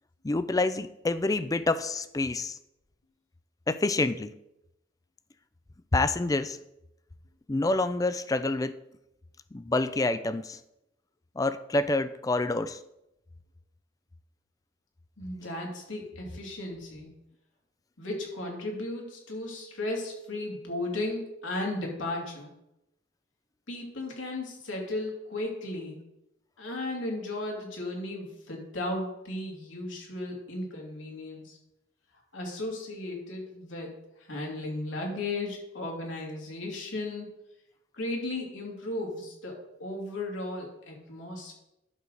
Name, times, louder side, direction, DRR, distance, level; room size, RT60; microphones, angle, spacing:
voice 1, 0.2-2.6 3.7-4.3 5.9-6.6 7.5-8.8 9.5-10.6 11.4-12.8, left 2 dB, 20° left, 13 dB, 0.4 m, -27 dB
voice 2, 15.2-17.1 18.0-22.5 23.7-26.1 26.6-31.6 32.3-37.3 37.9-41.5, left 2 dB, 85° left, 0 dB, 2.6 m, -35 dB
11.0 x 4.0 x 6.5 m, 0.86 s
head